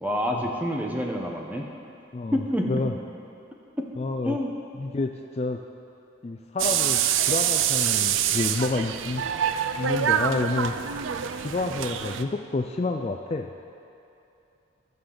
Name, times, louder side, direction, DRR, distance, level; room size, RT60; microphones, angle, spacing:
voice 1, 0.0-1.7 2.3-2.8 4.2-4.5, equal, 10° right, 0 dB, 0.8 m, -27 dB
voice 2, 2.1-2.9 4.0-4.4 4.7-5.6 6.2-7.0 7.3-9.2 9.8-10.7 11.4-13.5, left 3 dB, 30° left, 4 dB, 0.3 m, -29 dB
sound 1, 6.6-12.2, right 9 dB, 75° right, 0.4 m, -25 dB
18.5 x 6.7 x 3.9 m, 2.7 s
head